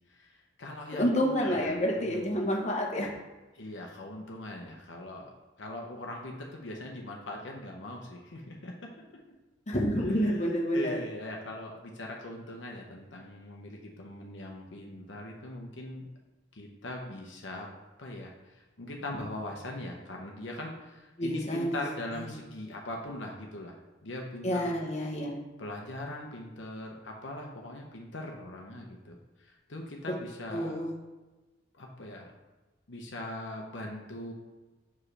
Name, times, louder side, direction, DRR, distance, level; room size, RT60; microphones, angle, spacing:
voice 1, 0.1-2.4 3.5-5.3 5.6-8.7 10.7-16.0 16.5-17.7 18.0-24.7 25.6-29.2 29.4-30.8 31.7-32.3 32.9-34.3, left 1 dB, 65° left, 0 dB, 0.7 m, -41 dB
voice 2, 0.9-3.1 9.7-11.0 21.2-21.8 22.2-22.3 24.4-25.3 30.5-30.9, equal, 35° left, -1 dB, 0.9 m, -29 dB
5.8 x 4.9 x 3.3 m, 1.2 s
head